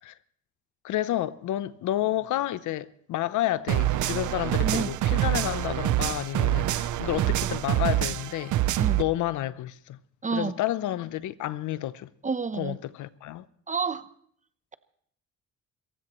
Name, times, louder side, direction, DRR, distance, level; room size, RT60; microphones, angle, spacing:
voice 1, 0.8-8.5 9.0-10.0 10.3-12.1 12.6-13.4, left 14 dB, 80° left, 0.7 m, -30 dB
sound 1, 3.7-9.0, right 13 dB, 80° right, 0.8 m, -26 dB
voice 2, 10.2-10.6 12.2-12.8 13.7-14.1, right 5 dB, 25° right, 0.9 m, -29 dB
27.0 x 15.5 x 3.1 m
cardioid pair, 90°, 30 cm